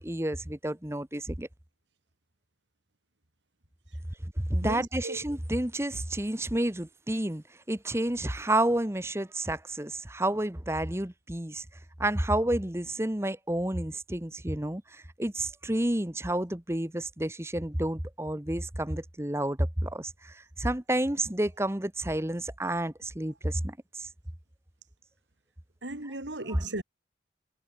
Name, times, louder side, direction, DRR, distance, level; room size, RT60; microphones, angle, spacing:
voice 1, 0.0-1.5 4.5-11.6 12.0-24.1, right 1 dB, 15° right, 1.2 m, -30 dB
voice 2, 4.6-5.2 25.8-26.8, right 2 dB, 90° right, 3.6 m, -36 dB
head